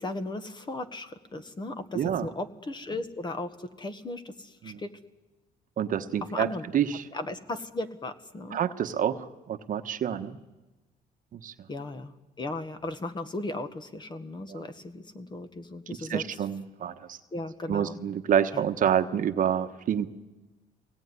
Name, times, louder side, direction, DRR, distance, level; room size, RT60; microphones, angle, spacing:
voice 1, 0.0-4.9 6.3-6.6 7.1-8.6 11.7-16.2 17.3-18.0 18.5-18.6, left 2 dB, 25° left, 10 dB, 1.6 m, -36 dB
voice 2, 1.9-2.3 4.6-4.8 5.8-6.5 6.7-7.1 8.5-10.4 11.3-11.5 14.5-14.6 16.1-17.2 17.7-20.1, right 9 dB, 55° right, 8 dB, 1.2 m, -28 dB
23.0 x 18.0 x 9.7 m, 1.1 s
cardioid pair, 110°, 17 cm